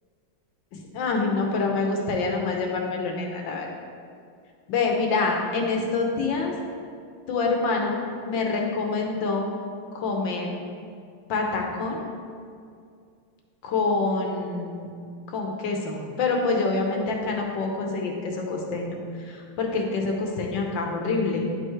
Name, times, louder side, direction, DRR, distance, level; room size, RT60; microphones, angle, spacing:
voice 1, 0.7-3.7 4.7-6.5 7.3-9.5 9.9-10.5 11.3-12.1 13.6-14.9 15.3-21.6, left 3 dB, 65° left, 1 dB, 1.5 m, -26 dB
10.0 x 5.6 x 3.2 m, 2.3 s
omnidirectional pair, 2.4 m